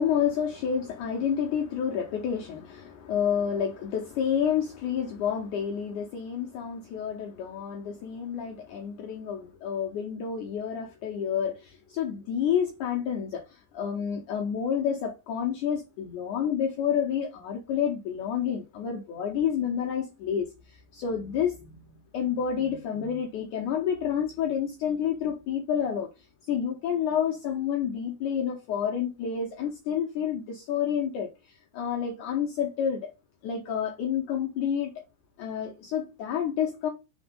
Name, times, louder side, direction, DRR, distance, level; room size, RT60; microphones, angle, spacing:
voice 1, 0.0-33.1 33.4-34.9 35.4-36.9, left 8 dB, 75° left, 1.9 m, -29 dB
5.1 x 4.4 x 5.2 m
omnidirectional pair, 4.4 m